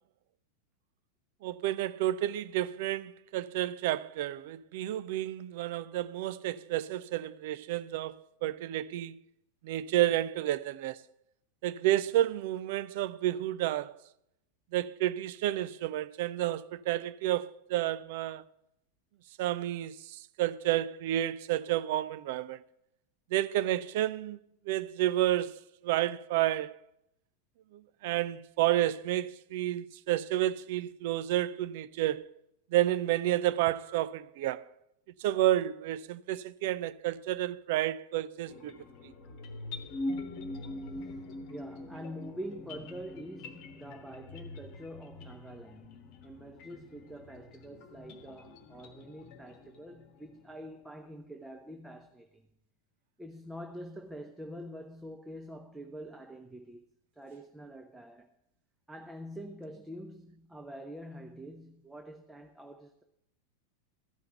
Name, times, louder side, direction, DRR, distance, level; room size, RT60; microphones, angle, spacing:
voice 1, 1.4-9.2 9.6-11.0 11.6-14.0 14.7-18.5 19.4-22.6 23.3-24.4 24.7-26.8 27.7-32.3 32.7-34.7 35.2-38.7 39.0-39.1, right 13 dB, 50° right, 0.4 m, -30 dB
sound 1, 38.5-50.6, left 2 dB, 40° left, 1.2 m, -43 dB
voice 2, 41.5-52.5 53.2-56.8 57.1-58.3 58.9-63.0, equal, 5° right, 0.8 m, -45 dB
14.0 x 5.7 x 7.8 m
figure-of-eight pair, 90°, 0 cm